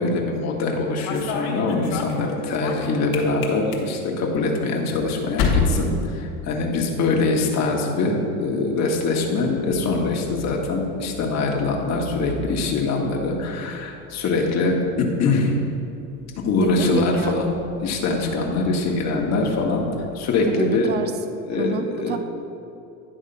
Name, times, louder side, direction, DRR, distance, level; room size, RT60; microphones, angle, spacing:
voice 1, 0.0-15.5 16.4-17.4 17.8-19.9 20.1-20.9 21.5-22.2, left 3 dB, 40° left, 0 dB, 1.4 m, -23 dB
sound 1, 0.7-6.9 7.2-7.7 8.8-20.5, left 4 dB, 60° left, 1.4 m, -33 dB
voice 2, 16.6-17.4 20.5-21.1 21.5-22.2, right 5 dB, 25° right, 9 dB, 0.5 m, -28 dB
10.0 x 3.6 x 5.3 m, 2.7 s
hypercardioid pair, 90°, 42 cm